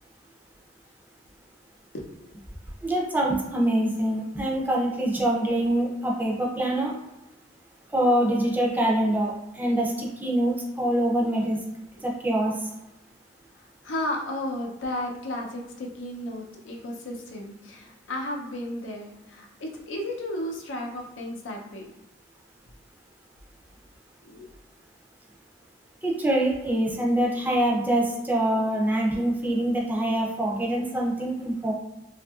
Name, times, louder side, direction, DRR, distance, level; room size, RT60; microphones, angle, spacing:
voice 1, 1.9-2.3 13.6-21.9 24.2-24.5, left 1 dB, 80° left, 0 dB, 0.5 m, -34 dB
voice 2, 2.8-7.0 7.9-11.6 12.0-12.5 26.0-31.7, right 1 dB, 10° right, -3 dB, 0.4 m, -24 dB
2.7 x 2.4 x 2.3 m, 0.95 s
head